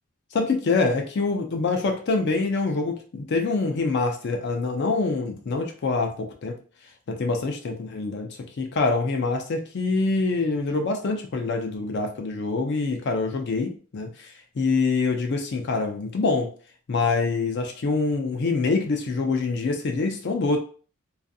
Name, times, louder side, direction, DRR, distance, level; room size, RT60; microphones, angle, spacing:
voice 1, 0.3-6.5 7.1-8.3 8.6-16.5 16.9-20.6, left 3 dB, 55° left, 3 dB, 0.4 m, -25 dB
2.4 x 2.4 x 2.6 m, 0.40 s
head